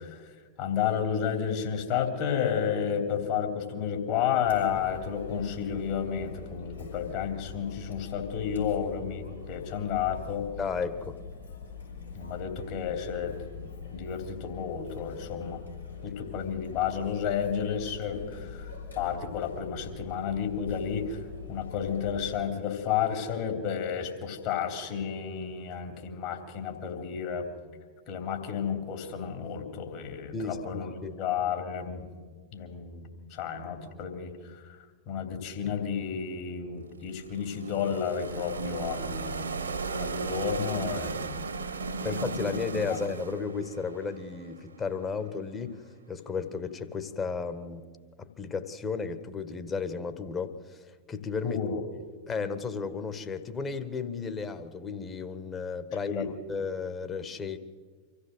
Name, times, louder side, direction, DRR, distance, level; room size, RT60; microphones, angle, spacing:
voice 1, 0.0-10.5 12.1-13.4 13.9-15.6 16.0-18.7 18.9-21.2 21.5-27.5 28.1-30.9 31.2-32.1 32.5-34.8 35.1-39.5 40.0-41.5 42.0-42.6 51.4-51.8 56.1-56.3, left 7 dB, 45° left, 4 dB, 3.2 m, -32 dB
Chatter, 4.4-22.3, left 5 dB, 80° left, 4.6 m, -43 dB
voice 2, 10.6-11.2 30.3-31.2 42.0-47.9 48.2-51.6 52.3-57.6, left 5 dB, 20° left, 9 dB, 1.6 m, -34 dB
sound 1, 36.9-44.9, right 4 dB, 70° right, 1.8 m, -36 dB
25.5 x 15.0 x 7.8 m, 1.5 s
figure-of-eight pair, 90°, 0 cm